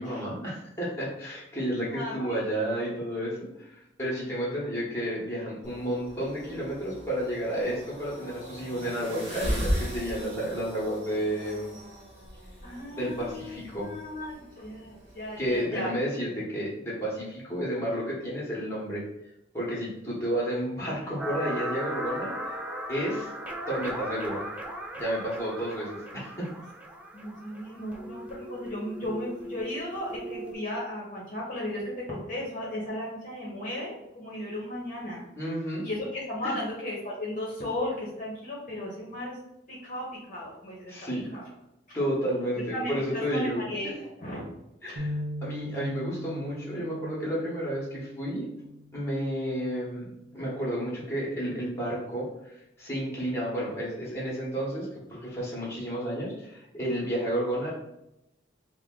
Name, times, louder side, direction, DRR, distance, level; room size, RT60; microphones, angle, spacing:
voice 1, 0.0-11.7 13.0-13.9 15.4-19.0 19.5-22.6 22.9-23.3 23.7-24.4 25.0-26.5 35.4-35.9 36.4-36.5 40.9-41.3 41.9-43.9 44.8-48.4 48.9-50.1 50.3-57.7, equal, 15° left, -6 dB, 1.1 m, -31 dB
voice 2, 1.9-2.4 12.6-15.9 27.1-35.2 35.8-39.4 39.7-40.9 41.3-41.5 42.7-43.9 44.2-44.4, left 1 dB, 45° left, -5 dB, 0.9 m, -35 dB
sound 1, 5.6-15.6, equal, 35° right, 1.3 m, -37 dB
sound 2, 21.2-30.5, right 1 dB, 5° right, 0.3 m, -38 dB
sound 3, 45.0-49.2 49.7-49.9 50.8-51.2, left 1 dB, 75° right, 0.7 m, -39 dB
3.5 x 2.2 x 3.7 m, 0.87 s
head